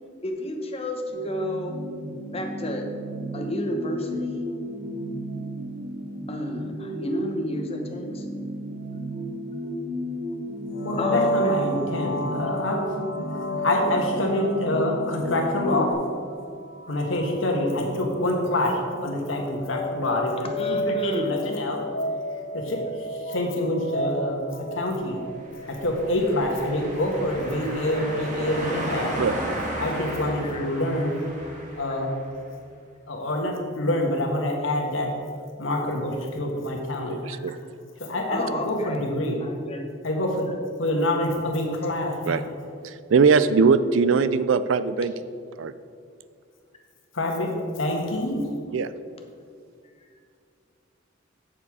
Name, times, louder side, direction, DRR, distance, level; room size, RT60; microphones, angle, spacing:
voice 1, 0.2-1.8 2.3-2.9 3.3-4.5 6.3-8.3 11.0-11.6 15.7-15.8 20.6-21.4 30.4-30.6 37.4-37.5 38.3-39.0 39.4-39.9, left 1 dB, 30° left, 2 dB, 0.9 m, -31 dB
sound 1, 1.1-15.9, equal, 55° right, 1.2 m, -34 dB
sound 2, 10.7-26.4, equal, 60° left, 0.5 m, -32 dB
voice 2, 10.8-12.8 13.3-15.9 16.9-21.8 22.3-25.2 25.7-29.1 29.8-31.2 31.8-32.1 33.1-35.1 35.6-37.2 38.0-39.4 40.0-40.5 40.8-42.4 47.1-48.5, left 1 dB, 75° left, 1 dB, 1.4 m, -26 dB
sound 3, 25.5-32.3, right 1 dB, 40° right, 1.7 m, -34 dB
voice 3, 37.1-37.6 42.3-42.4 42.8-45.1 45.6-45.7 48.7-48.9, right 5 dB, 75° right, 14 dB, 0.4 m, -21 dB
7.6 x 6.9 x 4.8 m, 2.3 s
head